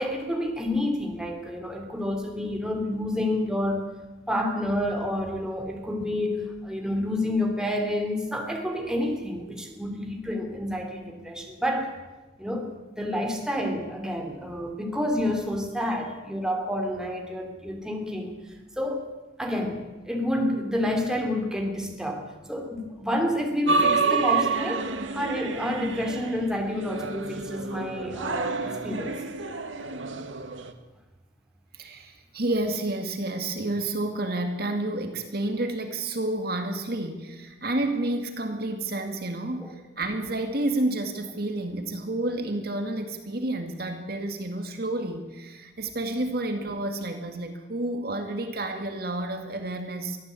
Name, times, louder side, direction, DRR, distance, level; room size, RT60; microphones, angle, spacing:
voice 1, 0.0-3.8 4.3-11.9 12.4-18.3 18.8-19.1 19.4-22.2 22.5-24.9 25.1-29.2 39.6-39.7, left 1 dB, 5° right, 2 dB, 3.2 m, -29 dB
sound 1, 23.7-30.7, right 4 dB, 90° right, 1.8 m, -28 dB
voice 2, 31.8-50.2, right 2 dB, 55° right, 5 dB, 2.2 m, -30 dB
23.5 x 15.0 x 8.5 m, 1.1 s
head